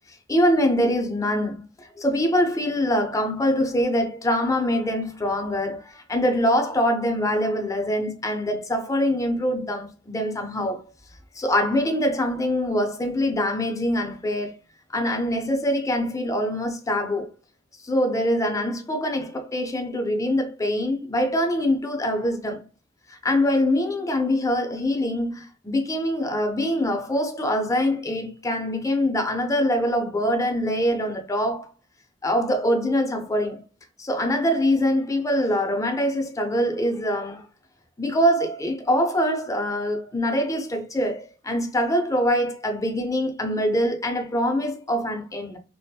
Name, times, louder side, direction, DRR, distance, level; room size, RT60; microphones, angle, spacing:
voice 1, 0.1-10.8 11.3-14.6 14.9-17.3 17.8-22.6 23.1-31.7 32.2-33.6 34.0-37.4 38.0-45.6, equal, 15° left, 0.5 m, -24 dB
2.7 x 2.5 x 2.2 m
head